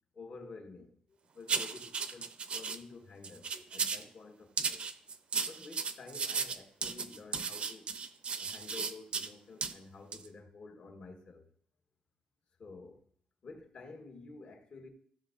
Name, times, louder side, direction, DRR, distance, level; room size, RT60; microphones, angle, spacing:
voice 1, 0.1-4.9 5.5-7.9 8.4-11.5 12.6-13.0 13.4-14.9, left 3 dB, 45° left, 1.1 m, -51 dB
sound 1, 1.5-2.8 3.2-4.1 4.6-9.3 9.6-9.7 10.1-10.3, right 5 dB, 45° right, 0.5 m, -35 dB
14.5 x 6.9 x 2.5 m
wide cardioid pair, 160°, 3 cm